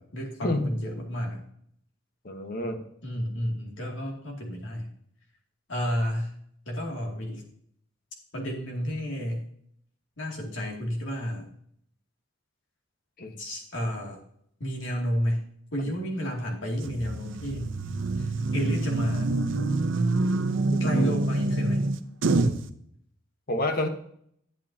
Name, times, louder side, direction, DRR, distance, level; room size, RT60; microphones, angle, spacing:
voice 1, 0.0-1.4 3.0-4.9 5.7-6.3 6.7-7.4 8.3-9.4 10.2-11.5 13.4-14.2 14.6-15.4 15.7-17.8 18.2-19.4 20.8-21.8, equal, 80° left, 0 dB, 2.5 m, -31 dB
voice 2, 2.2-2.8 13.2-13.4 15.8-15.9 20.7-21.1 23.5-23.9, left 1 dB, 50° left, 6 dB, 1.2 m, -29 dB
sound 1, 16.8-22.7, right 2 dB, 90° right, 0.7 m, -26 dB
11.5 x 8.9 x 2.8 m, 0.67 s
head